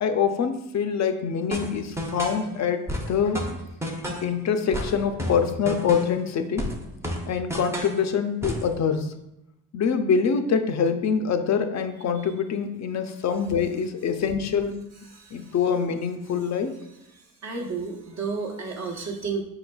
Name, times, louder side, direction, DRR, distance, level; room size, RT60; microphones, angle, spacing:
voice 1, 0.0-3.4 4.2-6.7 7.3-9.1 9.7-14.8 15.3-16.7, left 6 dB, 50° left, 7 dB, 0.5 m, -25 dB
sound 1, 1.5-2.4 2.9-4.3 4.7-6.2 6.6-8.0 8.4-8.7, equal, 10° right, 0.6 m, -31 dB
voice 2, 17.4-19.4, right 4 dB, 50° right, 1 dB, 0.9 m, -31 dB
5.1 x 3.9 x 2.3 m, 0.86 s
cardioid pair, 110°, 35 cm